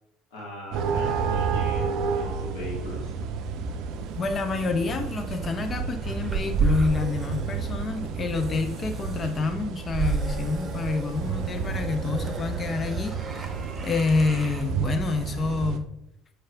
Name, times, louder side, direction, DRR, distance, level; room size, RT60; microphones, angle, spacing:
voice 1, 0.3-3.1, left 1 dB, 70° left, -4 dB, 1.2 m, -39 dB
sound 1, 0.7-15.8, right 5 dB, 60° right, 0.4 m, -31 dB
sound 2, 3.6-14.6, right 4 dB, 25° right, 0.8 m, -33 dB
voice 2, 4.2-13.5 13.8-15.9, left 4 dB, 35° left, 7 dB, 0.5 m, -28 dB
6.4 x 3.3 x 2.3 m, 0.83 s
hypercardioid pair, 65°, 0 cm